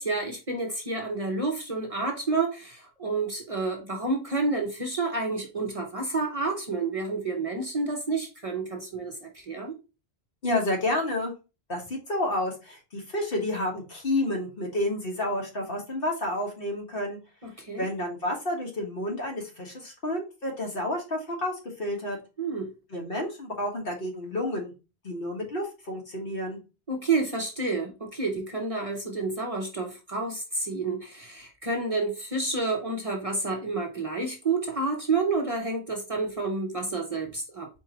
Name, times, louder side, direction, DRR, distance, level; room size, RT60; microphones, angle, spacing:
voice 1, 0.0-9.7 17.4-17.9 22.4-22.7 26.9-37.7, right 3 dB, 35° right, 2 dB, 0.7 m, -29 dB
voice 2, 10.4-11.3 11.7-17.2 17.8-22.2 22.9-24.7 25.0-26.6, left 1 dB, 60° left, 0 dB, 1.5 m, -30 dB
4.4 x 2.6 x 4.3 m, 0.29 s
omnidirectional pair, 1.1 m